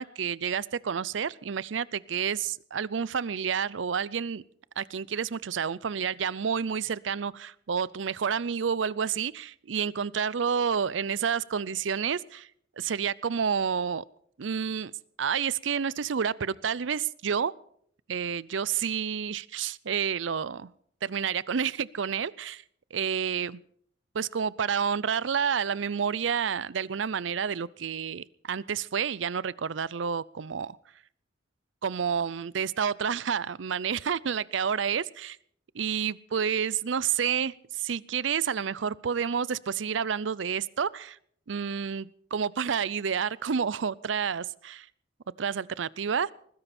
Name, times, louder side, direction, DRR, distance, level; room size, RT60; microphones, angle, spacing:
voice 1, 0.0-4.4 4.8-12.5 12.8-14.0 14.4-14.9 15.2-17.5 18.1-20.7 21.0-22.6 22.9-23.6 24.1-30.8 31.8-35.4 35.7-41.2 41.5-44.9 45.4-46.3, right 7 dB, 90° right, 21 dB, 0.5 m, -29 dB
20.5 x 15.5 x 4.3 m, 0.63 s
head